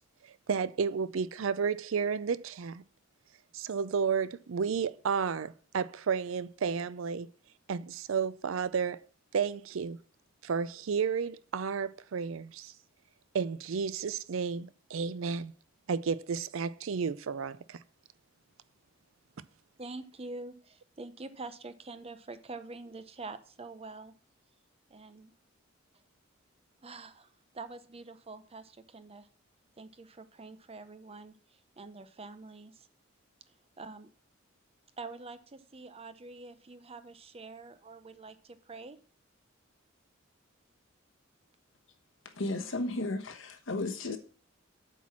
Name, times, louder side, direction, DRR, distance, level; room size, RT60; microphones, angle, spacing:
voice 1, 0.5-2.8 3.5-7.3 7.7-9.0 9.3-10.0 10.4-12.7 13.3-15.5 15.9-17.8, right 6 dB, 70° right, 0.5 m, -32 dB
voice 2, 19.8-24.1 24.9-25.3 26.8-29.3 29.8-32.9 33.8-34.1 35.0-39.0, right 3 dB, 30° right, 0.6 m, -46 dB
voice 3, 42.2-44.2, left 2 dB, 65° left, 1.3 m, -34 dB
8.2 x 4.6 x 7.3 m
head